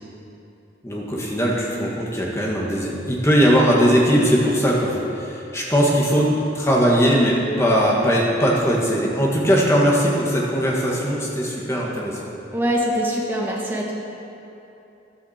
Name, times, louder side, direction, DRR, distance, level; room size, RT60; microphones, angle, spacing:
voice 1, 0.8-12.2, equal, 15° left, -3 dB, 1.7 m, -19 dB
voice 2, 12.5-13.9, equal, 10° right, -3 dB, 1.5 m, -23 dB
13.5 x 11.0 x 4.4 m, 2.9 s
head